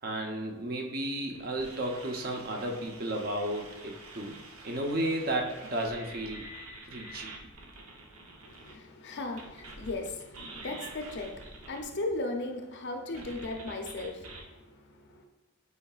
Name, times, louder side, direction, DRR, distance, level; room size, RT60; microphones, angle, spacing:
voice 1, 0.0-4.4 4.6-6.4 6.9-7.3, right 1 dB, 45° right, 2 dB, 0.8 m, -33 dB
sound 1, 1.3-8.8 9.4-11.8 13.1-14.4, right 2 dB, 85° right, 0.9 m, -47 dB
voice 2, 8.4-15.3, left 2 dB, 55° left, 4 dB, 0.7 m, -37 dB
8.4 x 4.6 x 2.4 m, 1.1 s
head